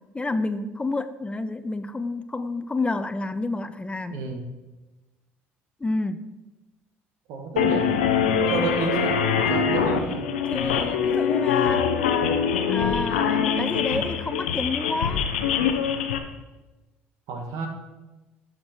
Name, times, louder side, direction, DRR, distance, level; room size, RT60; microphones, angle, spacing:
voice 1, 0.1-4.2 5.8-6.2 10.5-11.9 12.7-15.2, left 3 dB, 20° left, 11 dB, 0.5 m, -29 dB
voice 2, 4.1-4.4 7.3-7.9 8.5-10.2 17.3-17.7, right 4 dB, 65° right, 4 dB, 1.3 m, -30 dB
sound 1, 7.6-16.2, left 7 dB, 85° left, 0.6 m, -23 dB
11.5 x 6.5 x 3.1 m, 1.1 s
hypercardioid pair, 60°, 6 cm